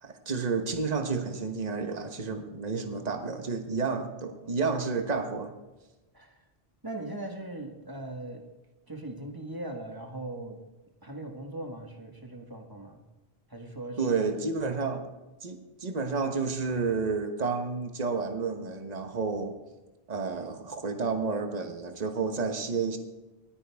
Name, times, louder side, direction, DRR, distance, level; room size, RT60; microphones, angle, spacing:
voice 1, 0.0-5.6 14.0-15.0 15.4-19.5 20.1-23.0, right 4 dB, 40° right, 6 dB, 1.2 m, -30 dB
voice 2, 6.8-8.4 8.9-10.6 11.0-13.0 13.5-14.1 14.6-14.8, right 1 dB, 20° right, 2 dB, 1.6 m, -39 dB
19.5 x 9.4 x 3.5 m, 1.1 s
omnidirectional pair, 1.1 m